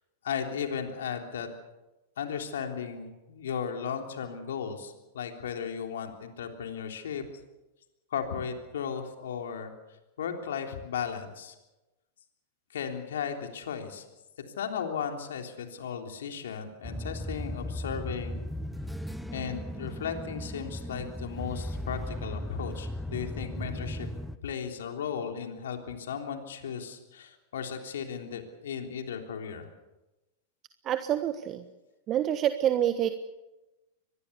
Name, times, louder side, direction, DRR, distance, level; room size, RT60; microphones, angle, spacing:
voice 1, 0.2-1.5 2.2-7.2 8.1-9.7 10.2-11.6 12.7-14.1 14.6-18.4 19.3-24.1 24.4-29.7, left 7 dB, 75° left, 4 dB, 3.4 m, -35 dB
sound 1, 16.8-24.4, left 1 dB, ahead, 1.2 m, -37 dB
voice 2, 30.8-31.6 32.1-33.1, right 11 dB, 35° right, 9 dB, 1.3 m, -27 dB
24.5 x 20.0 x 7.0 m, 1.0 s
hypercardioid pair, 100°, 0 cm